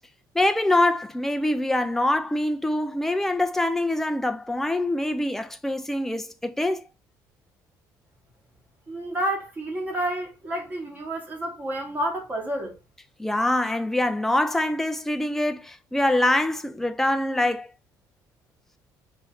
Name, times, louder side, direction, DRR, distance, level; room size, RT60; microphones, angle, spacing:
voice 1, 0.3-6.8 13.2-17.7, left 1 dB, 5° left, 0.4 m, -24 dB
voice 2, 8.9-12.7, right 1 dB, 20° right, 1.6 m, -30 dB
4.5 x 3.2 x 3.8 m
cardioid pair, 165°, 7 cm